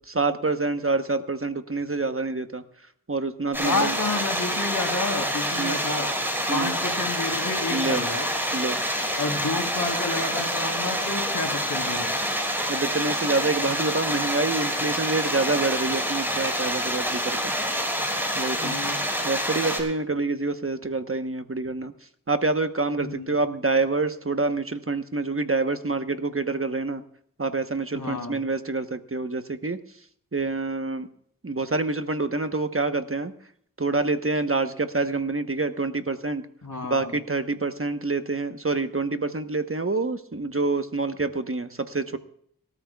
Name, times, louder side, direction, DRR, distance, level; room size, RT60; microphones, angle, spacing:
voice 1, 0.1-2.6 3.1-4.0 5.5-5.8 6.5-6.8 7.7-8.1 8.5-8.8 12.7-17.5 18.3-18.8 19.2-21.9 22.3-27.0 27.4-29.8 30.3-31.1 31.4-33.3 33.8-36.4 36.9-42.2, right 3 dB, 40° right, 8 dB, 1.1 m, -27 dB
sound 1, 3.5-19.8, equal, 5° right, 5.3 m, -27 dB
voice 2, 3.6-6.1 6.5-8.3 9.2-12.1 18.6-19.0 23.0-23.3 27.9-28.4 36.6-37.1, left 3 dB, 70° left, 3 dB, 3.5 m, -30 dB
25.5 x 13.5 x 2.4 m, 0.65 s
wide cardioid pair, 45°, 34 cm